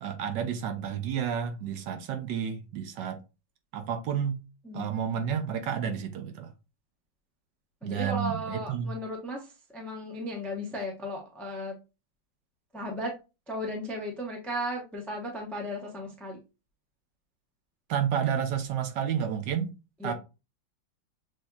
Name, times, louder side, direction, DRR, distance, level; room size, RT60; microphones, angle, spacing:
voice 1, 0.0-3.2 3.7-4.4 4.7-6.5 7.8-8.9 17.9-19.7 20.0-20.1, right 8 dB, 70° right, 1.2 m, -30 dB
voice 2, 4.6-5.0 7.8-11.7 12.7-13.1 13.5-16.4 20.0-20.1, equal, ahead, 0.3 m, -35 dB
6.2 x 2.7 x 2.3 m
omnidirectional pair, 2.1 m